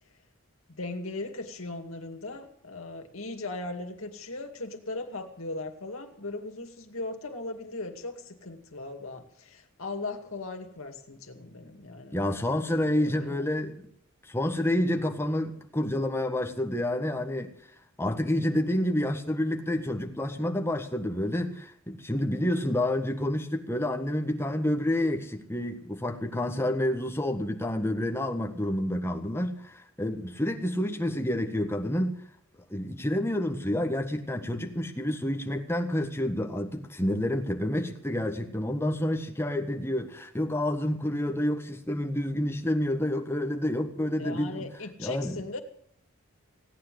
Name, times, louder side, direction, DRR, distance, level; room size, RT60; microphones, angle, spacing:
voice 1, 0.7-13.5 44.2-45.6, left 2 dB, 75° left, 2.3 m, -38 dB
voice 2, 12.1-13.9 14.2-17.5 18.0-32.2 32.7-44.6 45.0-45.4, left 1 dB, 10° left, 1.5 m, -29 dB
17.0 x 9.6 x 7.9 m
head